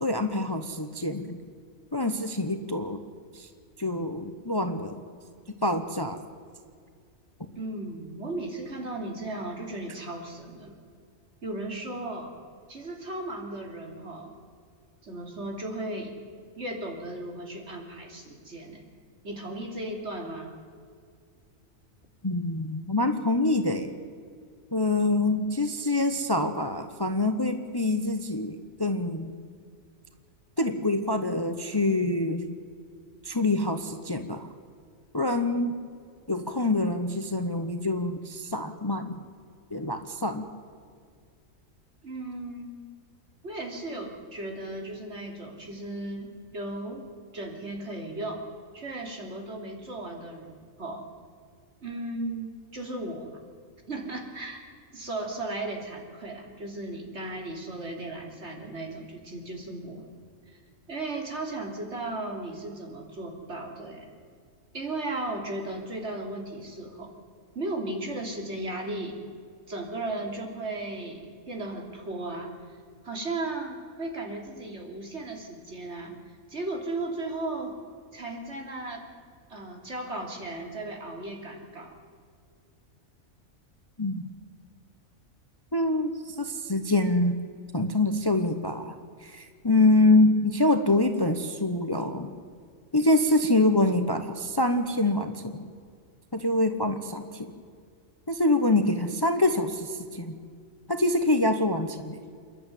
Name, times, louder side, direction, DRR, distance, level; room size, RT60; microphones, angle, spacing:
voice 1, 0.0-1.4 1.9-3.0 3.3-3.5 3.8-5.0 5.6-6.2 22.2-24.0 24.7-29.3 30.6-32.5 33.2-34.5 35.1-35.7 36.3-39.2 39.7-40.4 84.0-84.2 85.7-87.4 87.7-88.9 89.2-92.3 92.9-95.7 96.3-97.5 98.3-100.4 100.9-102.2, left 2 dB, 20° left, 7 dB, 0.9 m, -25 dB
voice 2, 7.5-10.8 11.4-12.3 12.7-14.3 15.0-16.1 16.6-18.9 19.2-20.5 42.0-42.8 43.4-47.0 47.3-48.4 48.7-51.0 51.8-53.4 53.9-54.6 54.9-60.1 60.5-60.6 60.9-64.1 64.7-67.1 67.5-69.2 69.7-72.6 73.0-76.2 76.5-77.8 78.1-79.1 79.5-82.0, right 2 dB, 55° right, 2 dB, 3.3 m, -36 dB
28.0 x 11.5 x 9.3 m, 2.2 s
omnidirectional pair, 1.4 m